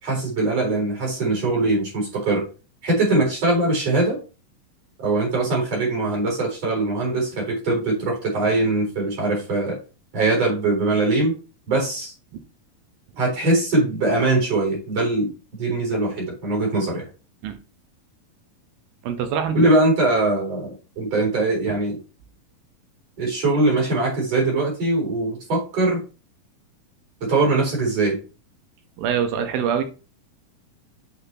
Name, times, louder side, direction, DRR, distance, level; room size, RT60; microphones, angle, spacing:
voice 1, 0.0-2.5 2.8-4.2 5.0-9.8 10.1-11.3 11.7-12.1 13.2-15.3 15.6-17.0 19.5-22.0 23.2-26.0 27.2-28.2, right 2 dB, 45° right, 5.2 m, -21 dB
voice 2, 19.0-19.6 29.0-29.8, right 8 dB, 80° right, 2.9 m, -24 dB
9.5 x 5.8 x 2.9 m
omnidirectional pair, 4.1 m